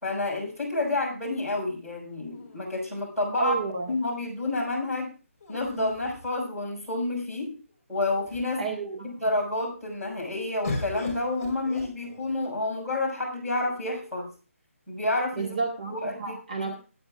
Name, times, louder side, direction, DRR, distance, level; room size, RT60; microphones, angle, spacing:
voice 1, 0.0-3.5 3.9-5.1 5.5-7.6 7.9-8.7 9.0-14.3 14.9-15.5 15.9-16.7, left 2 dB, 5° right, -8 dB, 4.8 m, -29 dB
sound 1, 2.3-3.4 5.4-6.9 7.7-7.8 8.1-8.7 10.6-12.5 13.4-14.1, left 2 dB, 20° left, 5.1 m, -39 dB
voice 2, 3.4-3.9 8.6-9.1 15.4-16.7, right 4 dB, 35° right, 2 dB, 1.6 m, -31 dB
21.5 x 9.3 x 2.4 m, 0.34 s
hypercardioid pair, 180°, 8 cm